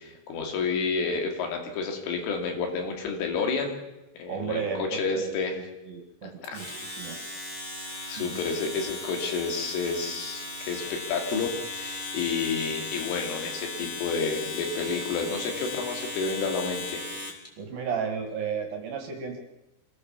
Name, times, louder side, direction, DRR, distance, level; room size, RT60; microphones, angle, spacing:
voice 1, 0.0-3.8 4.2-5.6 6.2-6.6 7.8-17.0, left 4 dB, 75° left, 3 dB, 5.2 m, -30 dB
voice 2, 4.3-6.7 7.0-7.2 8.2-8.4 17.6-19.4, right 6 dB, 55° right, 4 dB, 3.1 m, -34 dB
Domestic sounds home sounds, 6.4-17.5, left 2 dB, 15° left, 3.4 m, -37 dB
25.5 x 17.5 x 7.2 m, 0.98 s
omnidirectional pair, 5.8 m